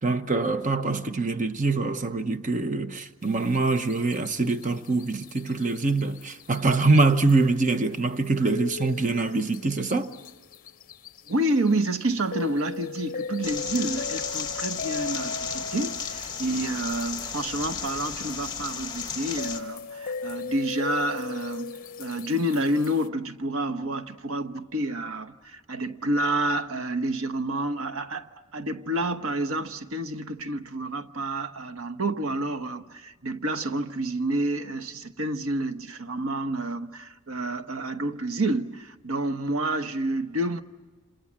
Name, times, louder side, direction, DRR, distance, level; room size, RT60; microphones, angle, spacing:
voice 1, 0.0-10.1, right 3 dB, 35° right, 1.0 m, -24 dB
sound 1, 3.2-23.1, left 4 dB, 40° left, 0.8 m, -39 dB
voice 2, 11.3-40.6, right 1 dB, 85° right, 1.1 m, -29 dB
sound 2, 13.4-19.6, left 6 dB, 20° left, 1.7 m, -34 dB
28.0 x 27.5 x 7.4 m
head